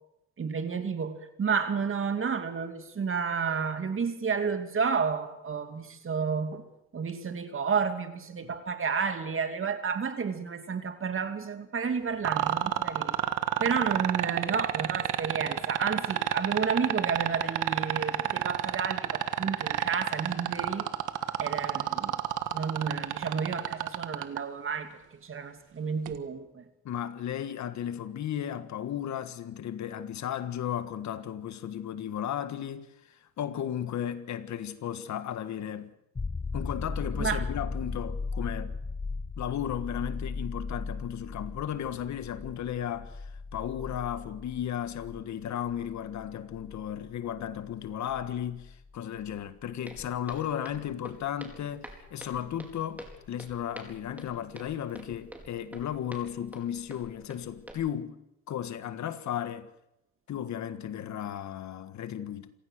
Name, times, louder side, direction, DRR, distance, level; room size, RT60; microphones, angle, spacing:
voice 1, 0.4-6.6 6.9-13.2 13.6-20.9 21.4-22.2 22.5-24.9 25.2-26.6 37.2-37.4, right 6 dB, 45° right, 2.6 m, -31 dB
sound 1, 12.2-24.4 26.1-26.2, right 13 dB, 85° right, 1.5 m, -28 dB
voice 2, 26.8-35.9 36.5-38.7 39.4-58.2 58.5-59.7 60.3-62.5, left 10 dB, 70° left, 1.5 m, -35 dB
sound 2, 36.2-49.7 52.4-52.5, left 4 dB, 20° left, 0.8 m, -38 dB
Walk footsteps, 49.9-57.7, equal, 5° right, 4.6 m, -48 dB
27.5 x 16.5 x 6.5 m
cardioid pair, 90°, 30 cm